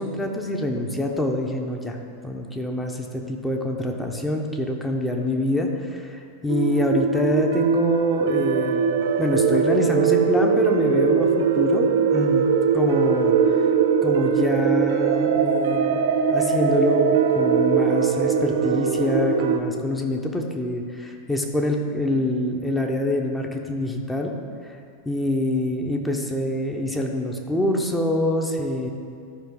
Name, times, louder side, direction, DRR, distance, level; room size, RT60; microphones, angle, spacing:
voice 1, 0.0-2.0 2.2-12.5 12.7-13.7 14.0-24.3 25.1-28.9, left 1 dB, 5° left, 2 dB, 1.0 m, -25 dB
sound 1, 6.5-19.6, right 6 dB, 55° right, 0.6 m, -21 dB
13.0 x 5.4 x 3.8 m, 2.3 s
figure-of-eight pair, 90°, 0 cm